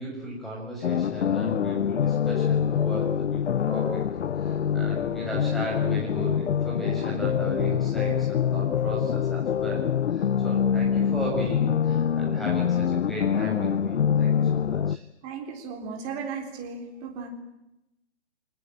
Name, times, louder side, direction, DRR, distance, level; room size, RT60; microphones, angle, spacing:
voice 1, 0.0-4.0 4.4-15.0, right 1 dB, ahead, -3 dB, 6.6 m, -35 dB
sound 1, 0.8-15.0, left 8 dB, 75° left, 0.8 m, -25 dB
voice 2, 15.2-17.3, right 5 dB, 20° right, 3 dB, 3.8 m, -35 dB
24.5 x 19.5 x 8.9 m, 0.91 s
hypercardioid pair, 160°, 35 cm